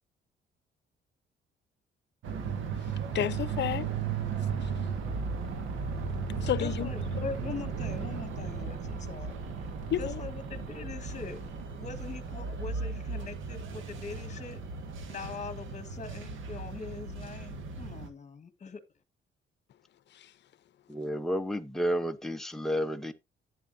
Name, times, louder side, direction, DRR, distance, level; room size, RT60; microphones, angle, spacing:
sound 1, 2.2-18.1, right 5 dB, 75° right, 1.6 m, -36 dB
voice 1, 2.8-3.9 4.6-4.7 6.4-6.9 9.9-10.2 20.1-20.3, left 11 dB, 60° left, 0.7 m, -32 dB
sound 2, 4.2-11.6, right 1 dB, 45° right, 4.9 m, -45 dB
voice 2, 6.6-9.4 10.0-11.4 11.8-14.6 15.1-18.8, left 5 dB, 35° left, 1.5 m, -42 dB
voice 3, 20.9-23.1, equal, ahead, 0.9 m, -31 dB
11.0 x 8.6 x 2.7 m
cardioid pair, 90°, 20 cm